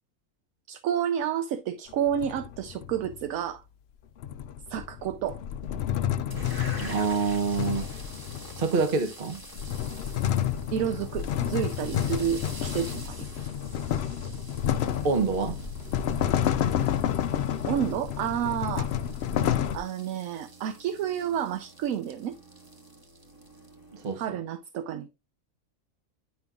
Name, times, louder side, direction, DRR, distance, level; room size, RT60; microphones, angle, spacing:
voice 1, 0.7-3.6 4.7-5.4 10.7-13.3 17.7-18.9 19.7-22.4 24.2-25.1, right 9 dB, 75° right, 1.0 m, -30 dB
sound 1, 1.9-3.2 4.2-8.8 9.3-19.8, left 10 dB, 65° left, 0.7 m, -30 dB
sound 2, 6.3-24.2, right 1 dB, 15° right, 1.2 m, -46 dB
voice 2, 6.8-7.9 8.6-9.4 15.0-15.6 23.9-24.4, right 4 dB, 45° right, 1.0 m, -26 dB
10.0 x 5.2 x 2.3 m
omnidirectional pair, 1.5 m